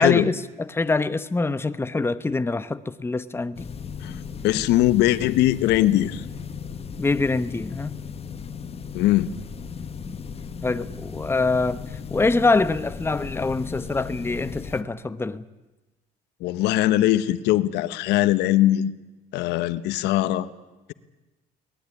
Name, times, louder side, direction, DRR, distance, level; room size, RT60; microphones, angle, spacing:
voice 1, 0.0-3.7 7.0-8.0 10.1-10.2 10.6-11.8 12.1-15.4, left 3 dB, 15° left, 1.0 m, -24 dB
sound 1, 3.6-14.8, left 6 dB, 35° left, 1.5 m, -36 dB
voice 2, 4.4-6.2 8.9-9.3 16.4-18.9 19.3-20.5, left 14 dB, 90° left, 1.1 m, -21 dB
24.5 x 19.0 x 9.9 m
cardioid pair, 110°, 17 cm